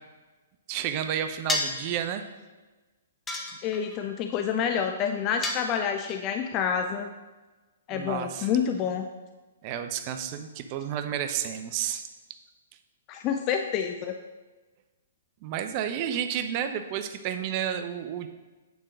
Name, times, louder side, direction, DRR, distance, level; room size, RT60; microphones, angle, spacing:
voice 1, 0.7-2.2 7.9-8.5 9.6-12.1 15.4-18.3, right 9 dB, 40° right, 8 dB, 0.7 m, -31 dB
sound 1, 1.5-1.9 3.3-4.0 5.4-6.2, left 2 dB, 15° left, 1.0 m, -31 dB
voice 2, 3.6-7.1 7.9-9.1 13.1-14.2, left 7 dB, 30° left, 6 dB, 0.5 m, -28 dB
9.3 x 3.8 x 6.4 m, 1.2 s
hypercardioid pair, 130°, 0 cm